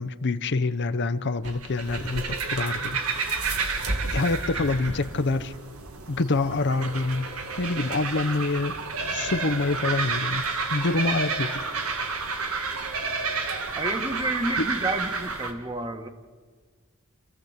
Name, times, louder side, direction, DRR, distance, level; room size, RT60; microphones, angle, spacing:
voice 1, 0.0-3.3 4.0-5.5 6.1-7.3 7.6-8.8 9.1-11.7 14.6-14.7, left 3 dB, 55° left, 10 dB, 0.7 m, -26 dB
sound 1, 1.4-15.5, right 4 dB, 90° right, 2.1 m, -30 dB
voice 2, 13.8-16.1, right 2 dB, 20° right, 7 dB, 1.4 m, -29 dB
28.0 x 15.0 x 8.0 m, 1.5 s
head